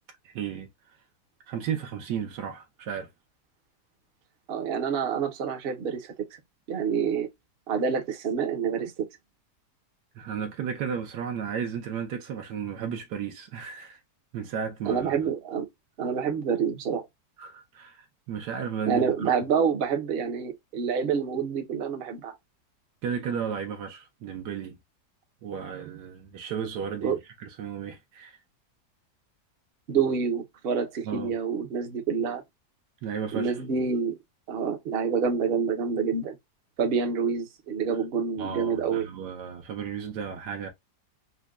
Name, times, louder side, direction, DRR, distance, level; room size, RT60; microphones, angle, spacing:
voice 1, 0.2-0.7 1.5-3.1 10.1-14.0 14.3-15.2 17.4-19.3 23.0-24.8 25.4-28.4 31.0-31.3 33.0-33.5 38.4-40.7, right 7 dB, 80° right, 1.3 m, -34 dB
voice 2, 4.5-6.1 6.7-7.3 7.7-9.1 14.9-15.7 16.0-17.1 18.9-22.3 27.0-27.2 29.9-32.4 33.3-34.2 34.5-36.4 36.8-39.1, right 6 dB, 50° right, 0.8 m, -27 dB
5.1 x 2.2 x 2.3 m
omnidirectional pair, 1.8 m